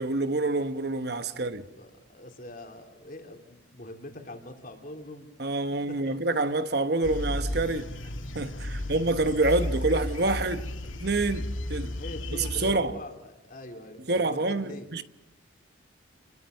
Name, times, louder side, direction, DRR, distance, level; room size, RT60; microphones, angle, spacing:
voice 1, 0.0-1.6 5.4-7.9 8.3-10.7 11.0-11.9 12.4-12.9 14.1-15.0, right 2 dB, 55° right, 1.1 m, -27 dB
voice 2, 1.3-5.3 5.9-6.2 8.5-9.0 11.9-14.9, left 1 dB, 45° left, 3.5 m, -43 dB
sound 1, 7.0-12.7, left 1 dB, 80° left, 2.3 m, -33 dB
30.0 x 22.5 x 6.7 m
head